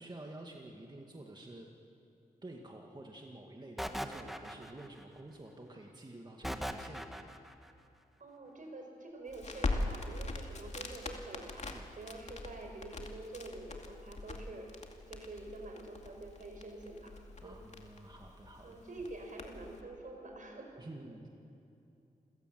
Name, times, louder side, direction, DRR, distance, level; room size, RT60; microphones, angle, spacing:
voice 1, 0.0-1.7 2.4-7.4 11.7-11.9 17.4-18.8 20.8-21.3, right 2 dB, 25° right, 1 dB, 2.0 m, -50 dB
sound 1, 3.8-5.0 6.4-7.5, equal, ahead, 1.6 m, -39 dB
voice 2, 8.2-11.6 11.9-14.7 15.1-17.1 17.4-17.6 18.6-20.7, right 2 dB, 55° right, 3 dB, 5.1 m, -47 dB
Crackle, 9.3-19.8, left 2 dB, 45° left, 2.5 m, -42 dB
27.5 x 17.0 x 7.8 m, 2.8 s
cardioid pair, 65°, 16 cm